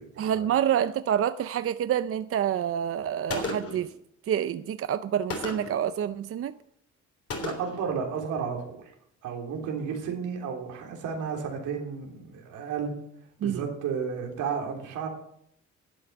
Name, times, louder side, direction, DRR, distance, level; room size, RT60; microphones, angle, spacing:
voice 1, 0.2-3.9 4.3-6.5 13.4-13.6, right 9 dB, 50° right, 13 dB, 0.5 m, -27 dB
Gunshot gunfire, 3.3-3.9 5.3-5.8 7.3-7.9, left 3 dB, 50° left, 3.4 m, -34 dB
voice 2, 7.4-8.8 9.2-12.9 13.4-15.1, right 6 dB, 85° right, 1 dB, 3.3 m, -32 dB
11.5 x 8.6 x 7.2 m, 0.72 s
cardioid pair, 90°, 30 cm